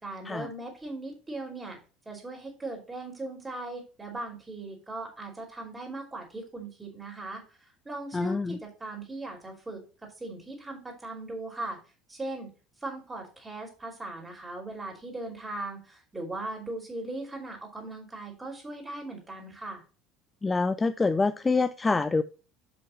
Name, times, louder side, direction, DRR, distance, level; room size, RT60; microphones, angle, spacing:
voice 1, 0.0-1.8 2.0-7.4 7.8-9.8 10.2-11.8 12.1-12.5 12.8-19.8, right 2 dB, 15° right, 0 dB, 4.9 m, -38 dB
voice 2, 8.1-8.6 20.4-22.2, left 3 dB, 20° left, 12 dB, 0.5 m, -26 dB
8.1 x 7.8 x 3.1 m, 0.33 s
figure-of-eight pair, 65°, 0 cm